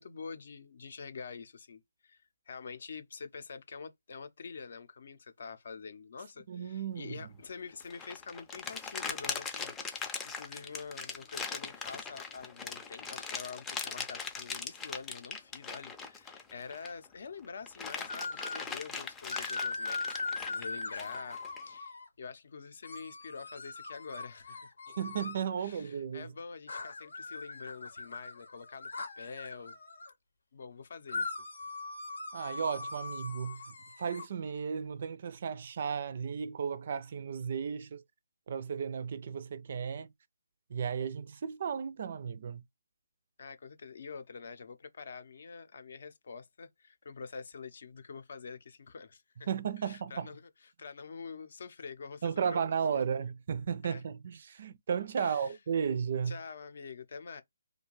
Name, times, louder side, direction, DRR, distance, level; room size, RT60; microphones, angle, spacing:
voice 1, 0.0-24.7 25.6-29.8 30.5-31.4 43.4-49.5 49.8-50.4 50.8-52.6 52.9-53.0 53.8-54.0 55.2-55.6 56.3-57.4, left 5 dB, 60° left, 0.6 m, -46 dB
voice 2, 6.5-7.3 25.0-26.3 32.3-33.6 34.0-38.0 38.5-40.1 40.7-42.6 49.5-50.3 52.2-56.3, right 7 dB, 50° right, 0.3 m, -34 dB
sound 1, 7.8-17.0 17.4-21.6, left 5 dB, 10° left, 0.4 m, -40 dB
sound 2, 18.1-18.8 19.3-22.1 22.8-25.5 26.7-30.1 31.1-34.3, left 3 dB, 85° left, 0.9 m, -40 dB
2.5 x 2.2 x 3.0 m
hypercardioid pair, 155°, 0 cm